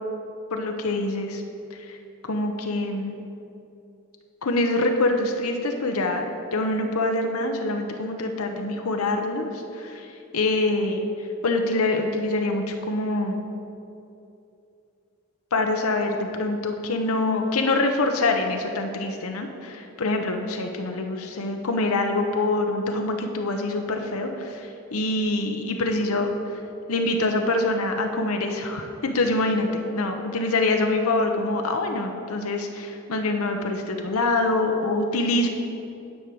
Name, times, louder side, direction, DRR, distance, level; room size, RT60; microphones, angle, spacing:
voice 1, 0.5-1.4 1.9-2.0 2.2-3.2 4.4-11.0 11.4-13.4 15.5-26.3 26.9-35.5, left 2 dB, 90° left, 4 dB, 0.8 m, -25 dB
9.8 x 5.0 x 7.6 m, 2.7 s
head